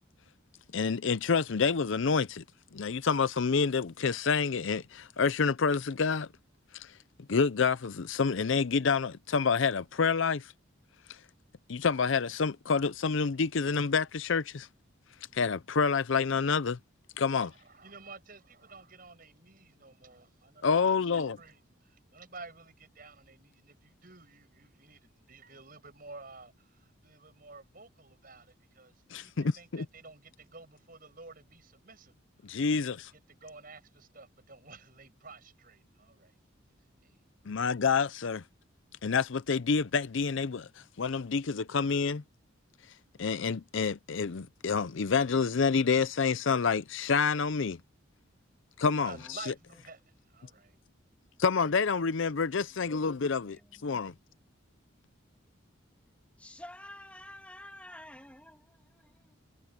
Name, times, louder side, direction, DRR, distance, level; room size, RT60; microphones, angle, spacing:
voice 1, 0.7-2.4 2.7-6.3 6.7-6.9 7.3-10.5 11.7-14.7 15.3-16.8 17.2-17.5 20.6-21.4 29.1-29.9 32.4-33.1 37.5-38.4 39.0-40.7 41.0-42.2 43.2-47.8 48.8-49.1 51.4-54.1, left 5 dB, 65° left, 0.6 m, -28 dB
voice 2, 17.3-32.2 32.4-36.4 37.0-37.2 37.5-37.9 49.0-50.8, right 3 dB, 45° right, 6.8 m, -52 dB
voice 3, 53.4-54.2 56.4-59.3, left 1 dB, 5° left, 2.6 m, -50 dB
head